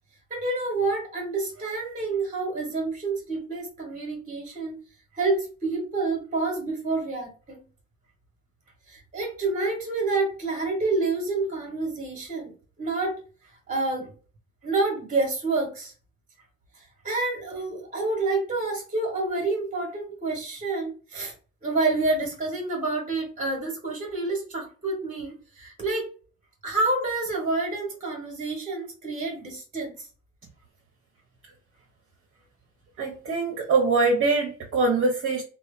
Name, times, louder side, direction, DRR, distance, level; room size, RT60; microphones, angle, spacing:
voice 1, 0.3-4.7 5.1-7.6 8.9-12.5 12.8-13.2 13.7-14.1 14.6-15.9 16.7-21.3 21.6-26.1 26.6-30.1, right 3 dB, 30° right, -2 dB, 1.1 m, -28 dB
voice 2, 33.0-35.4, right 3 dB, 45° right, 1 dB, 0.7 m, -23 dB
2.7 x 2.1 x 2.4 m, 0.37 s
cardioid pair, 90°, 30 cm